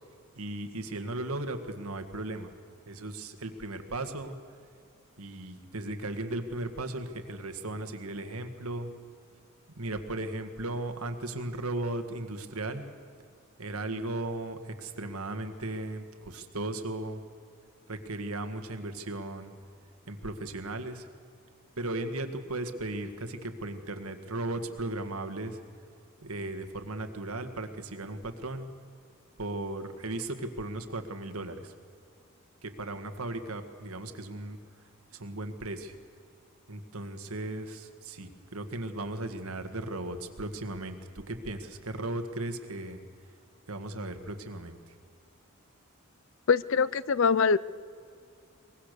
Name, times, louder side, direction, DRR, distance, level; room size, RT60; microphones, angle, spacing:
voice 1, 0.4-2.5 2.9-4.4 5.2-8.9 9.8-12.8 13.6-17.2 17.9-19.5 20.1-21.1 21.8-25.6 26.2-28.7 29.4-31.7 32.6-34.6 35.1-35.9 36.7-43.0 43.7-44.8, right 2 dB, 80° right, 7 dB, 1.8 m, -36 dB
voice 2, 46.5-47.6, left 5 dB, 60° left, 19 dB, 0.5 m, -23 dB
23.0 x 21.0 x 6.8 m, 2.3 s
head